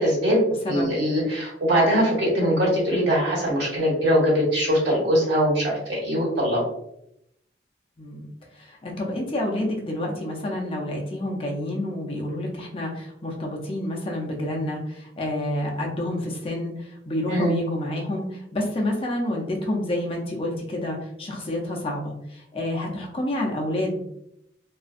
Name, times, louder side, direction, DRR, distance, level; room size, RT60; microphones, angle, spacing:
voice 1, 0.0-6.6 17.3-17.6, equal, 70° right, -4 dB, 1.2 m, -22 dB
voice 2, 8.5-24.0, left 1 dB, 30° left, -1 dB, 0.4 m, -29 dB
2.4 x 2.2 x 2.4 m, 0.79 s
head